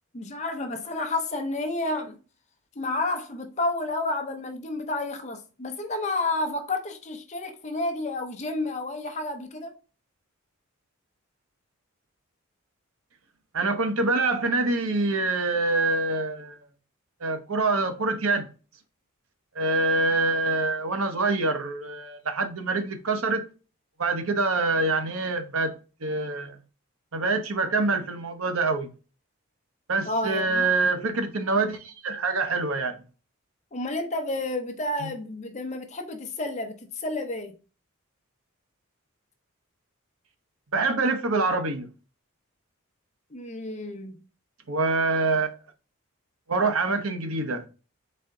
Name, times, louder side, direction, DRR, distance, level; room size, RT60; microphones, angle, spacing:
voice 1, 0.1-2.2 2.8-9.8 30.1-30.7 33.7-37.6 43.3-44.2, left 2 dB, 30° left, 0.7 m, -30 dB
voice 2, 13.5-16.6 17.2-18.5 19.5-23.5 24.0-25.7 26.0-26.6 27.1-28.9 29.9-33.0 35.0-35.1 40.7-41.9 44.7-45.5 46.5-47.6, right 3 dB, 75° right, 0.8 m, -25 dB
4.3 x 3.3 x 3.7 m
head